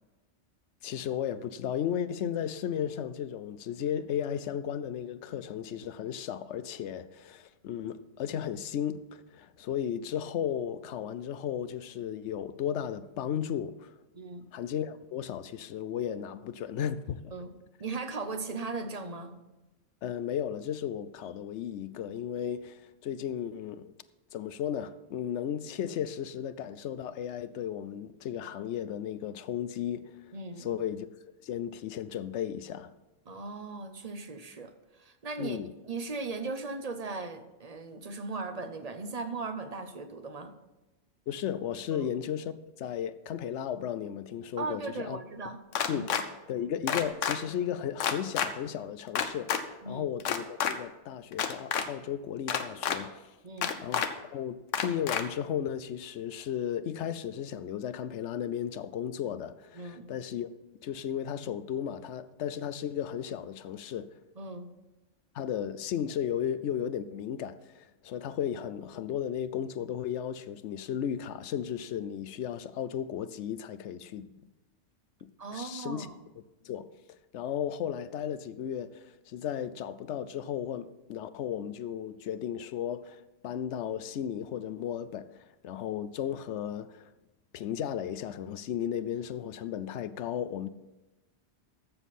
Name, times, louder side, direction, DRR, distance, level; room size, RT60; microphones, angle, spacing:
voice 1, 0.8-13.9 14.5-17.3 20.0-23.9 24.3-30.2 30.6-31.1 31.4-32.9 35.4-35.7 41.3-45.2 45.9-46.1 46.5-53.3 53.8-60.5 60.8-64.1 65.3-74.4 75.2-76.1 76.6-85.4 85.6-87.1 87.5-90.7, left 9 dB, 70° left, 0.9 m, -35 dB
voice 2, 14.1-14.5 17.3-19.4 30.3-30.7 33.3-40.5 41.9-42.1 44.6-45.6 45.9-46.1 49.8-50.0 53.4-53.7 59.8-60.1 64.4-64.7 75.4-76.2, right 3 dB, 35° right, 0.8 m, -38 dB
sound 1, 45.7-46.2 46.9-47.4 48.0-48.5 49.2-49.6 50.2-50.7 51.3-51.9 52.5-53.0 53.6-54.1 54.7-55.2, left 8 dB, 90° left, 1.1 m, -28 dB
13.5 x 7.3 x 4.2 m
omnidirectional pair, 1.3 m